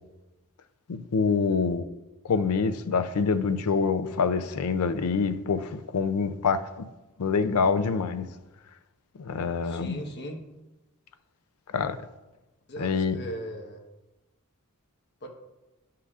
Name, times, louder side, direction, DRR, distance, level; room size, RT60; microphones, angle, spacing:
voice 1, 0.9-1.9 2.2-6.9 7.2-8.3 9.2-10.0 11.7-12.0 12.8-13.2, left 5 dB, 80° left, 0.5 m, -26 dB
voice 2, 9.6-10.4 12.7-13.8 15.2-15.3, equal, 50° left, 1.2 m, -38 dB
11.5 x 5.7 x 2.4 m
head